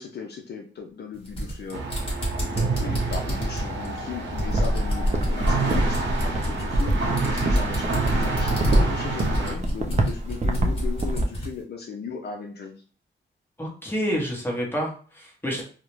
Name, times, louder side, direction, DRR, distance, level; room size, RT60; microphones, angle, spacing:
voice 1, 0.0-12.7, left 6 dB, 60° left, 2 dB, 0.4 m, -37 dB
sound 1, 1.1-11.6, right 1 dB, 30° left, 1.2 m, -32 dB
sound 2, 1.7-9.5, right 3 dB, 75° right, 0.7 m, -28 dB
sound 3, 4.3-11.2, right 1 dB, 35° right, 0.4 m, -25 dB
voice 2, 13.6-15.6, equal, 10° left, -2 dB, 0.9 m, -28 dB
2.4 x 2.0 x 3.0 m, 0.42 s
cardioid pair, 90°, 19 cm